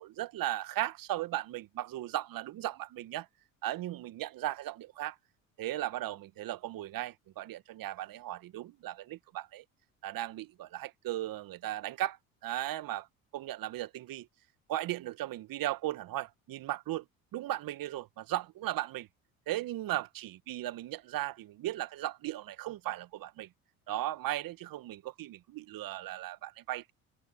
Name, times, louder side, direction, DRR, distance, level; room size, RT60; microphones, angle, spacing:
voice 1, 0.0-3.3 3.6-5.2 5.6-9.6 10.0-13.1 13.3-14.3 14.7-17.0 17.3-19.1 19.5-23.5 23.9-26.9, right 14 dB, 55° right, 1.7 m, -37 dB
hypercardioid pair, 60°, 40 cm